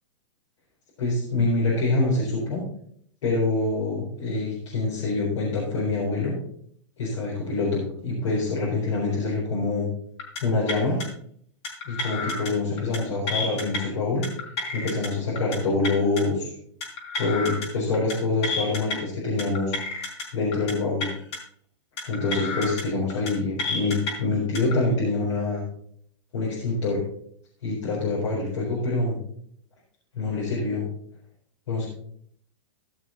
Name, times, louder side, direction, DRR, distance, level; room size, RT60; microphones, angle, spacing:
voice 1, 1.0-2.6 3.2-6.4 7.0-9.9 10.4-11.0 11.8-14.2 14.7-16.5 17.2-19.7 20.3-21.1 22.0-25.6 26.3-27.0 27.6-29.2 30.1-30.8 31.7-31.9, left 3 dB, 75° left, -6 dB, 4.2 m, -25 dB
sound 1, 10.2-10.4 10.7-11.0 11.6-12.5 12.8-13.0 13.3-13.8 14.2-15.1 15.4-15.6 15.8-16.2 16.8-17.7 17.9-18.1 18.4-19.0 19.4-20.2 20.5-20.7 21.0-21.4 22.0-22.8 23.1-23.3 23.6-24.1 24.5-24.7, left 3 dB, 60° left, 4.2 m, -30 dB
14.5 x 6.2 x 4.0 m, 0.65 s
hypercardioid pair, 140°, 16 cm